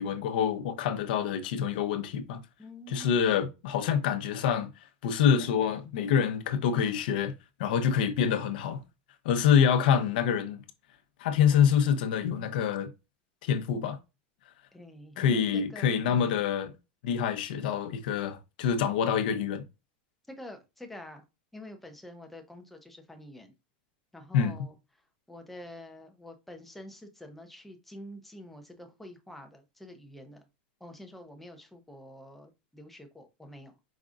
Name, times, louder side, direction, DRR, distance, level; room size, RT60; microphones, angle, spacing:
voice 1, 0.0-2.4 2.9-4.7 5.0-7.3 7.6-8.8 9.2-10.6 11.2-12.9 13.4-14.0 15.2-16.7 17.0-19.6 24.3-24.5, left 8 dB, 60° left, 0.7 m, -26 dB
voice 2, 2.6-3.2 14.7-16.2 20.3-21.2 21.5-23.5 24.1-24.8 25.3-30.5 30.8-33.7, left 1 dB, 5° left, 0.6 m, -47 dB
5.0 x 3.7 x 2.4 m
supercardioid pair, 175°, 6 cm